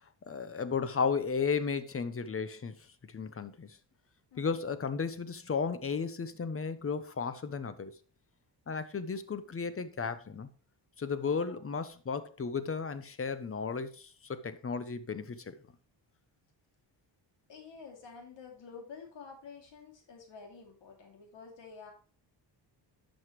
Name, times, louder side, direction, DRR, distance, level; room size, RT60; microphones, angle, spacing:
voice 1, 0.3-2.8 3.1-3.8 4.4-7.9 8.7-10.5 11.0-15.5, left 5 dB, 30° left, 0.9 m, -34 dB
voice 2, 11.3-11.6 17.5-21.9, left 5 dB, 80° left, 2.8 m, -50 dB
11.0 x 6.5 x 3.2 m
cardioid pair, 100°, 43 cm